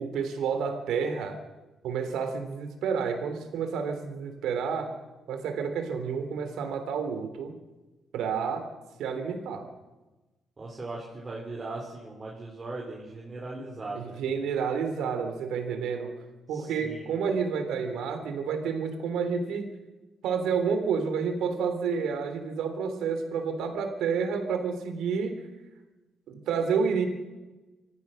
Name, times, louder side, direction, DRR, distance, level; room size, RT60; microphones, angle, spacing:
voice 1, 0.0-1.4 1.8-4.9 5.3-7.5 8.1-8.7 9.0-9.7 13.9-16.2 16.5-19.7 20.2-25.5 26.3-27.1, right 6 dB, 80° right, 7 dB, 3.4 m, -30 dB
voice 2, 10.6-14.2 16.5-17.1, right 2 dB, 30° right, -4 dB, 4.9 m, -39 dB
26.0 x 15.5 x 6.5 m, 1.2 s
cardioid pair, 90°, 0 cm